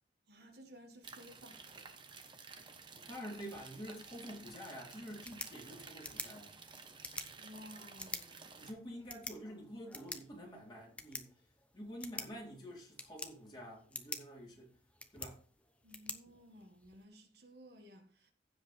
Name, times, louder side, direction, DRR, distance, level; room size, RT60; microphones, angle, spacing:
voice 1, 0.3-2.0 7.4-8.7 15.8-18.3, equal, 60° right, 1.6 m, -56 dB
sound 1, 1.0-8.7, right 4 dB, 25° right, 1.0 m, -53 dB
voice 2, 2.9-6.5 8.5-14.8 15.1-15.4, equal, 25° left, 3.8 m, -48 dB
sound 2, 5.0-17.0, left 2 dB, 5° left, 0.8 m, -49 dB
15.5 x 5.2 x 3.3 m
head